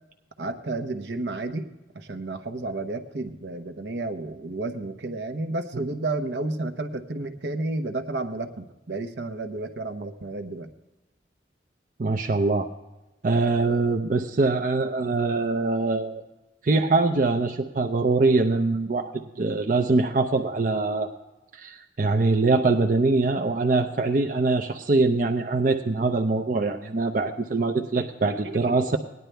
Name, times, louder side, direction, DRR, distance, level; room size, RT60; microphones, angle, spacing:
voice 1, 0.4-1.7 1.9-10.7 28.3-28.8, right 2 dB, 70° right, 7 dB, 1.0 m, -31 dB
voice 2, 12.0-12.7 13.2-16.2 16.6-19.1 19.4-21.1 21.5-29.0, right 3 dB, 45° right, 4 dB, 0.6 m, -23 dB
18.0 x 10.5 x 3.4 m, 1.0 s
head